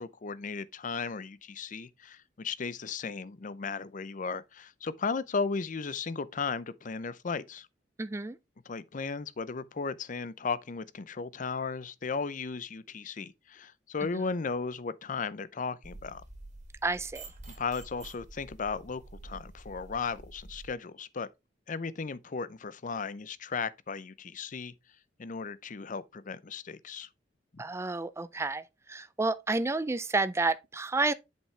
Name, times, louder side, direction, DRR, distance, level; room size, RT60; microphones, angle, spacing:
voice 1, 0.0-7.7 8.7-16.2 17.6-21.3 21.7-24.7 25.2-27.1 27.5-27.6, left 5 dB, 45° left, 0.6 m, -35 dB
voice 2, 8.0-8.4 16.8-17.2 27.6-28.6 28.9-31.1, right 3 dB, 15° right, 0.4 m, -30 dB
sound 1, 15.8-20.7, right 2 dB, 40° right, 2.2 m, -48 dB
7.5 x 5.7 x 3.2 m
head